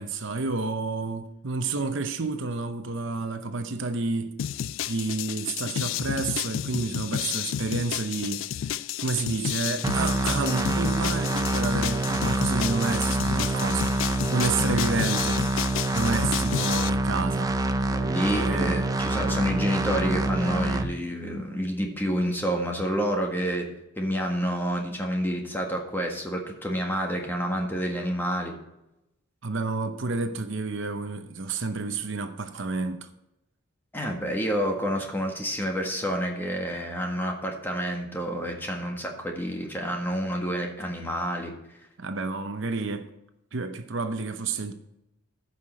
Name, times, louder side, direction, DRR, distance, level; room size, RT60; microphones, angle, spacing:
voice 1, 0.0-4.3 4.9-15.4 15.7-17.6 18.3-18.8 29.4-33.1 42.0-43.1 43.5-44.7, right 3 dB, 60° right, 0.8 m, -30 dB
sound 1, 4.4-16.9, left 10 dB, 65° left, 0.3 m, -31 dB
sound 2, 9.8-20.8, right 2 dB, 15° right, 0.5 m, -26 dB
voice 2, 17.9-23.7 24.0-28.5 33.9-41.5, equal, 10° left, 1.6 m, -28 dB
15.0 x 5.8 x 4.3 m
head